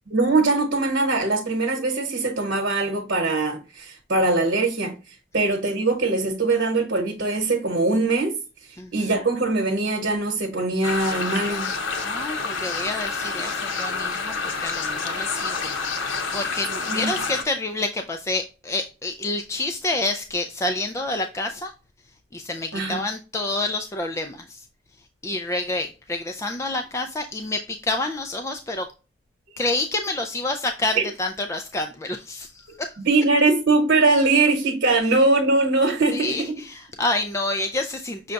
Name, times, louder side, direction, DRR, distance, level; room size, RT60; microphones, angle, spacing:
voice 1, 0.1-4.9 5.3-8.4 8.9-11.7 16.9-17.2 22.7-23.0 31.0-31.1 33.0-36.5, right 3 dB, 65° right, 1.1 m, -21 dB
sound 1, 10.8-17.4, left 4 dB, 85° left, 1.0 m, -28 dB
voice 2, 12.0-21.7 22.3-24.7 25.2-28.9 29.6-33.0 35.0-35.2 36.1-38.3, left 2 dB, 15° left, 0.3 m, -28 dB
6.2 x 2.3 x 3.8 m
head